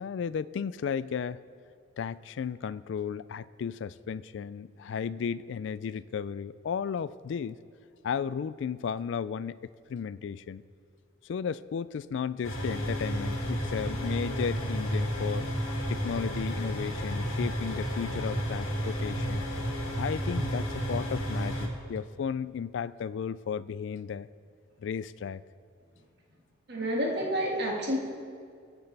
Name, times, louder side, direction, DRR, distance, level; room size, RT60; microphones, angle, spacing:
voice 1, 0.0-1.4 2.0-7.6 8.0-10.6 11.2-15.5 15.9-19.5 20.0-24.3 24.8-25.4, left 7 dB, 65° left, 18 dB, 0.3 m, -34 dB
Machine engine running - Boiler firing up, 12.4-21.7, equal, 90° left, 2.1 m, -31 dB
voice 2, 26.7-28.0, equal, 55° right, -1 dB, 1.9 m, -29 dB
23.0 x 8.1 x 3.3 m, 2.3 s
head